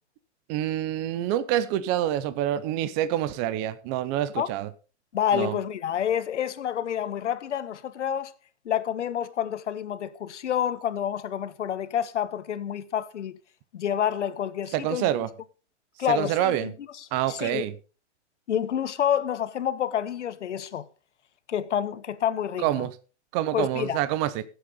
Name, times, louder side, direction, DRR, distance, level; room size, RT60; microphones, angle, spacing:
voice 1, 0.5-4.7 5.3-5.6 14.7-15.3 16.1-16.7 17.1-17.7 22.6-22.9 23.3-24.4, right 12 dB, 25° right, 0.6 m, -27 dB
voice 2, 5.1-8.3 8.6-13.3 13.7-15.1 16.0-16.7 17.0-17.6 18.5-20.9 21.5-22.9 23.5-24.0, left 9 dB, 85° left, 1.3 m, -28 dB
16.5 x 7.9 x 3.9 m
hypercardioid pair, 150°, 34 cm